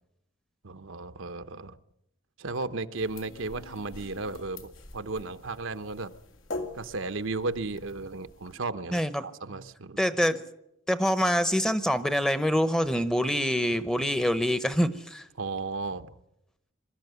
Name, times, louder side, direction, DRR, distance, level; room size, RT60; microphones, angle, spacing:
voice 1, 0.6-1.8 2.4-6.1 6.8-10.0 15.4-16.1, right 3 dB, 75° right, 11 dB, 0.9 m, -34 dB
sound 1, 3.0-8.5, left 2 dB, 85° left, 2.4 m, -44 dB
voice 2, 8.9-9.3 10.0-10.4 10.9-15.3, equal, 5° left, 12 dB, 0.8 m, -25 dB
22.5 x 13.5 x 9.4 m, 0.85 s
head